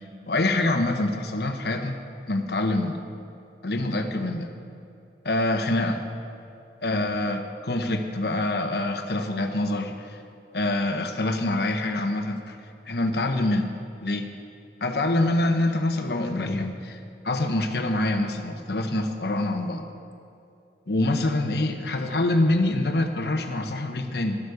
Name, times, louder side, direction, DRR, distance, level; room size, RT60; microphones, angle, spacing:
voice 1, 0.3-2.0 2.3-3.0 3.6-4.5 5.2-6.0 6.8-10.2 10.5-12.6 12.9-13.7 14.0-14.3 14.8-17.0 17.2-19.8 20.9-24.4, left 2 dB, 60° left, 6 dB, 1.0 m, -25 dB
12.5 x 8.2 x 6.8 m, 2.6 s
head